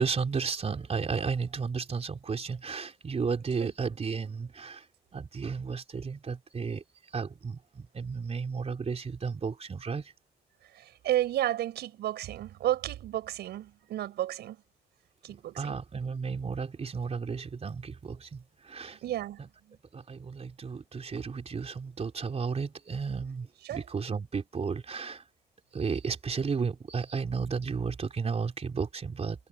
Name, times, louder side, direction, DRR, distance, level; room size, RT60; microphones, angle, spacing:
voice 1, 0.0-4.9 5.1-6.8 7.1-10.1 15.3-19.0 19.4-19.5 19.9-25.2 25.7-29.5, right 5 dB, 40° right, 3.7 m, -33 dB
voice 2, 10.7-14.6 15.2-15.8 18.9-19.4 19.7-19.8 23.6-23.9, right 13 dB, 85° right, 5.3 m, -32 dB
cardioid pair, 95°, 17 cm